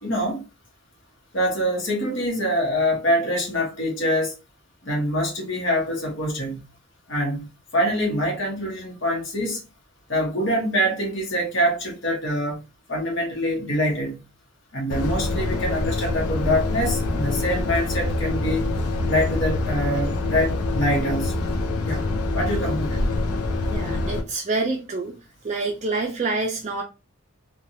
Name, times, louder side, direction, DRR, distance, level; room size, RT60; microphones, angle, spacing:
voice 1, 0.0-0.4 1.3-4.3 4.8-6.7 7.1-9.6 10.1-12.6 12.9-14.2 14.7-18.6 19.0-21.3 21.8-22.0 22.3-23.0, equal, 55° left, 1.0 m, -25 dB
sound 1, 14.9-24.2, left 2 dB, 90° left, 0.5 m, -25 dB
voice 2, 23.6-25.2 25.4-26.8, right 3 dB, 30° right, 0.4 m, -27 dB
3.2 x 2.2 x 2.6 m
head